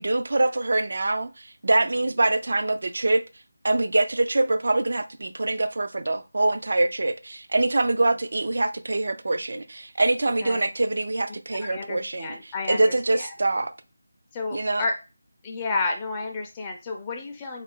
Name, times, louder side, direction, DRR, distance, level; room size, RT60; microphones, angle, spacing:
voice 1, 0.0-3.2 3.6-13.7 14.5-14.8, right 2 dB, 65° right, 0.4 m, -24 dB
voice 2, 11.7-13.3 14.3-15.0 15.4-17.6, left 3 dB, 15° left, 0.4 m, -31 dB
3.2 x 2.4 x 3.6 m
figure-of-eight pair, 165°, 0 cm